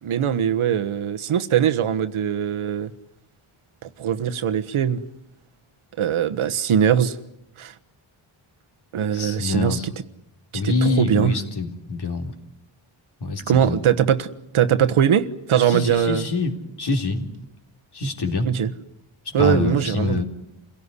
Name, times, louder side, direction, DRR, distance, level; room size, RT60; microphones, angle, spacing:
voice 1, 0.0-2.9 3.8-5.0 6.0-7.2 7.6-7.7 8.9-9.9 10.5-11.3 13.5-14.3 14.5-16.3 18.4-18.7 19.3-20.2, right 9 dB, 75° right, 1.4 m, -21 dB
voice 2, 9.1-9.9 10.5-12.3 13.2-13.8 15.7-16.5 16.8-17.3 17.9-18.5 19.3-20.2, left 3 dB, 50° left, 3.6 m, -25 dB
28.5 x 17.0 x 9.8 m
wide cardioid pair, 120°, 50 cm